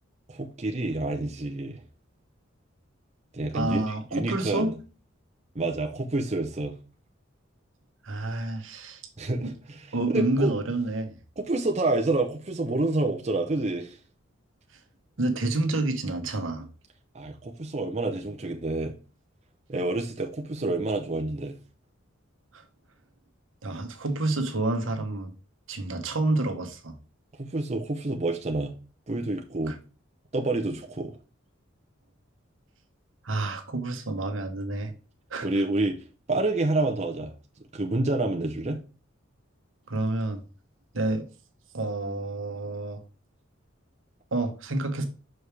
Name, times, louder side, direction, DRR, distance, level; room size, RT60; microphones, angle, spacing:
voice 1, 0.3-1.8 3.3-4.7 5.5-6.8 9.2-10.6 11.4-14.0 17.1-18.9 19.7-21.6 27.4-28.8 29.1-29.8 30.3-31.2 35.4-36.0 36.3-37.3 37.7-38.8, right 2 dB, 35° right, 0.7 m, -28 dB
voice 2, 3.5-4.7 8.0-9.0 9.4-9.5 9.9-11.1 15.2-16.7 22.5-22.6 23.6-25.3 25.7-26.9 29.7-29.8 33.2-34.9 35.3-35.6 39.9-40.4 40.9-41.3 41.7-43.0 44.3-45.1, right 2 dB, 75° right, 1.1 m, -29 dB
6.2 x 4.8 x 3.4 m
head